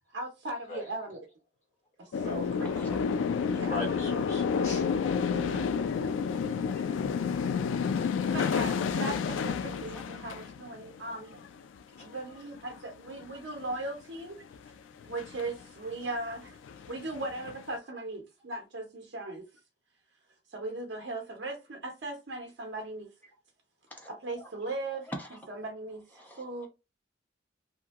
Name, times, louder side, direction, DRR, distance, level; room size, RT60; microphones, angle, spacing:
voice 1, 0.1-1.2 2.0-3.0 3.5-3.8 5.3-5.7 8.3-11.4 12.0-14.5 15.1-16.6 16.9-19.5 20.5-23.1 24.1-25.1 25.5-26.7, right 2 dB, 70° right, 0.6 m, -38 dB
sound 1, 2.1-11.6 12.0-12.2 12.5-12.8 13.1-13.8 14.5-14.7 15.0-15.6 16.0-16.1 16.3-17.6, left 6 dB, 85° left, 0.3 m, -30 dB
voice 2, 2.6-3.0 3.2-3.8 4.1-4.2 6.7-6.8 9.8-10.1 23.9-24.5 25.1-25.4 26.2-26.7, equal, 10° left, 0.7 m, -45 dB
voice 3, 3.7-4.9 12.0-12.1, left 2 dB, 40° left, 1.5 m, -38 dB
2.8 x 2.5 x 2.3 m
head